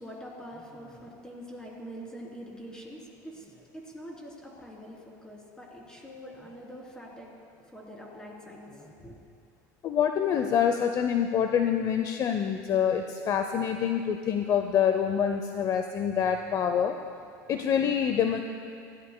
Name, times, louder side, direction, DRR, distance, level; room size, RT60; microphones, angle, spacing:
voice 1, 0.0-7.4 7.7-9.1, equal, 10° left, -3 dB, 3.3 m, -44 dB
voice 2, 9.8-16.9 17.5-18.4, left 8 dB, 40° left, 6 dB, 0.6 m, -26 dB
20.5 x 16.0 x 2.2 m, 2.4 s
supercardioid pair, 110°, 9 cm